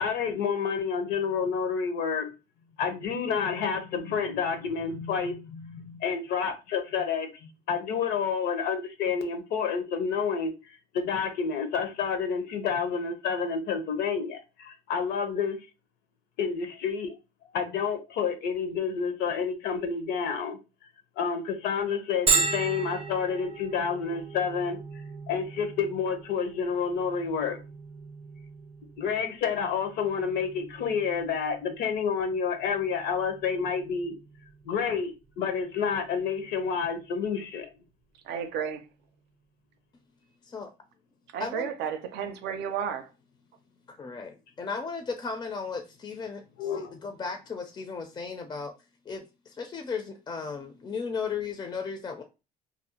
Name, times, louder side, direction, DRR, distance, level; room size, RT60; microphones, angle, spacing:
voice 1, 0.0-2.3 2.8-7.3 7.7-10.5 10.9-15.6 16.4-17.1 17.5-20.6 21.2-24.8 25.3-27.6 29.0-34.1 34.6-37.7 46.6-47.0, left 6 dB, 80° left, 0.6 m, -29 dB
Bell, 22.3-37.7, right 4 dB, 35° right, 0.6 m, -36 dB
voice 2, 38.2-38.8 41.3-43.1, right 8 dB, 80° right, 0.5 m, -32 dB
voice 3, 41.4-41.7 44.0-48.7 49.1-52.2, left 5 dB, 25° left, 0.4 m, -35 dB
2.6 x 2.0 x 2.7 m
cardioid pair, 110°, 17 cm